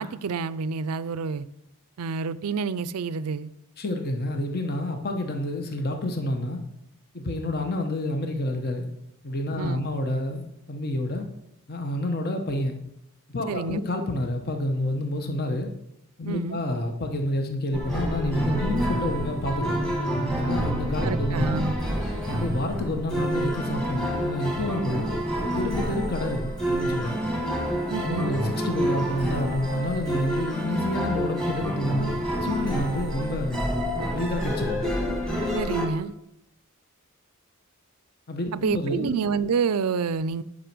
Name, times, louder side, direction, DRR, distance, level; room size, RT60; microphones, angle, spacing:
voice 1, 0.0-1.5 2.0-3.5 9.6-9.9 13.5-13.8 16.3-16.6 21.0-21.7 27.9-28.3 35.5-36.2 38.5-40.4, right 5 dB, 85° right, 0.4 m, -28 dB
voice 2, 3.8-6.6 7.1-8.9 9.2-11.2 11.7-12.8 13.3-15.7 16.2-19.8 20.3-21.6 22.3-25.1 25.5-27.2 28.0-33.6 34.1-34.8 38.3-39.2, left 1 dB, 45° left, 1.1 m, -29 dB
sound 1, 17.7-35.9, equal, 5° left, 1.6 m, -28 dB
10.0 x 5.4 x 6.0 m
head